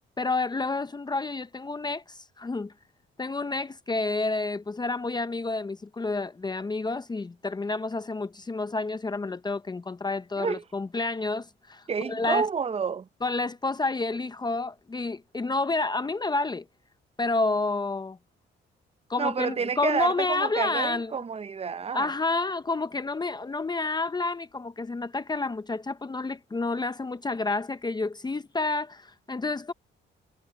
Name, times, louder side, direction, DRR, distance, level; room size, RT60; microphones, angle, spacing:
voice 1, 0.2-2.7 3.2-11.8 12.1-12.5 13.2-16.6 17.2-18.2 19.1-21.1 21.9-29.7, left 3 dB, 20° left, 0.8 m, -29 dB
voice 2, 11.9-13.1 19.2-22.1, right 6 dB, 30° right, 0.6 m, -29 dB
cardioid pair, 90°, 20 cm